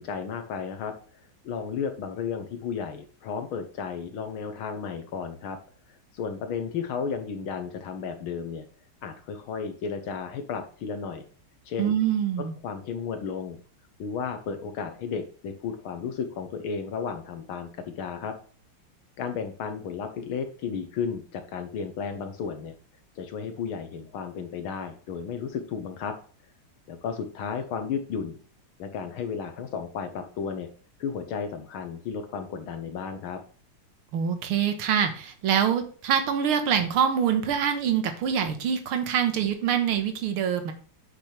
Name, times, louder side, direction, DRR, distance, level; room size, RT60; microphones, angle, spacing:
voice 1, 0.0-5.6 6.1-8.6 9.0-11.2 11.7-12.0 12.6-13.6 14.0-18.3 19.2-22.7 23.2-26.2 26.9-28.4 28.8-30.7 31.0-33.4, left 6 dB, 75° left, 7 dB, 1.8 m, -33 dB
voice 2, 11.8-12.5 34.1-40.7, right 8 dB, 85° right, 7 dB, 2.0 m, -25 dB
8.5 x 6.1 x 3.3 m, 0.42 s
omnidirectional pair, 2.3 m